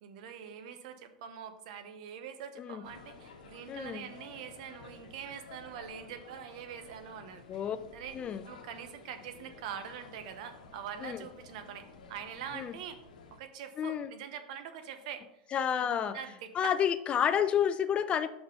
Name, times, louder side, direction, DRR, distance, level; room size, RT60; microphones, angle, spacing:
voice 1, 0.0-7.6 7.9-8.2 8.5-13.0 13.3-15.2 15.8-16.7, right 8 dB, 65° right, 9 dB, 0.9 m, -44 dB
sound 1, 2.8-13.4, left 4 dB, 85° left, 1.0 m, -53 dB
voice 2, 3.7-4.1 7.5-7.8 8.1-8.4 11.0-11.2 12.5-12.7 13.8-14.1 15.5-16.2 16.5-18.3, left 8 dB, 25° left, 12 dB, 0.4 m, -30 dB
5.6 x 4.3 x 5.2 m, 0.80 s
hypercardioid pair, 120°, 4 cm